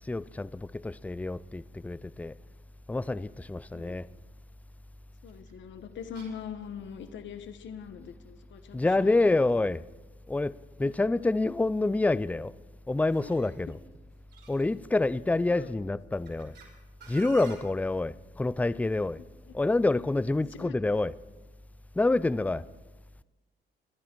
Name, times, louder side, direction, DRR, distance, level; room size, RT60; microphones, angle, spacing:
voice 1, 0.1-2.4 2.9-4.1 8.7-9.8 10.3-12.5 12.9-13.8 14.5-16.5 17.1-19.2 19.5-21.1 22.0-22.6, left 2 dB, 5° left, 0.4 m, -27 dB
voice 2, 5.2-9.4 10.8-10.9 13.2-13.3 15.5-15.7 19.5-19.6 20.4-20.7, left 7 dB, 70° left, 1.2 m, -42 dB
sound 1, 5.3-5.5 6.1-6.8 7.1-7.2 7.5-7.6 7.8-8.3 9.4-9.5 10.2-11.3 11.5-11.9 13.0-15.2 15.9-16.6 17.0-17.5, right 5 dB, 60° right, 5.1 m, -51 dB
24.5 x 10.0 x 4.6 m
cardioid pair, 90°, 20 cm